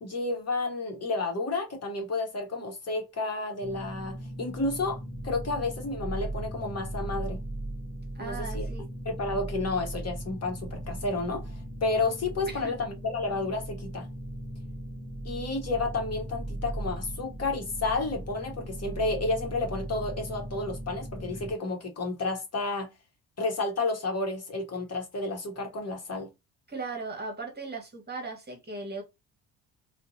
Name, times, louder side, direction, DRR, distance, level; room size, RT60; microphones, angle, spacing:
voice 1, 0.0-5.0 5.2-7.4 8.2-8.7 9.0-14.1 15.2-22.9 23.4-26.3, left 3 dB, 35° left, 1.0 m, -31 dB
sound 1, 3.6-21.5, right 1 dB, 5° right, 0.7 m, -38 dB
voice 2, 8.1-8.9 12.5-12.7 26.7-29.0, right 3 dB, 25° right, 1.2 m, -37 dB
2.5 x 2.2 x 2.6 m
hypercardioid pair, 60°, 41 cm